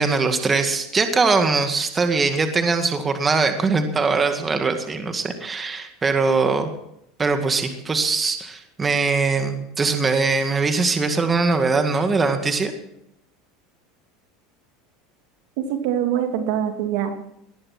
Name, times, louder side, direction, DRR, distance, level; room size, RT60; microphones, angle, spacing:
voice 1, 0.0-6.7 7.2-12.7, right 4 dB, 20° right, 6 dB, 2.0 m, -21 dB
voice 2, 15.6-17.1, right 10 dB, 70° right, 6 dB, 2.5 m, -24 dB
19.0 x 11.0 x 6.1 m, 0.78 s
supercardioid pair, 105°, 0 cm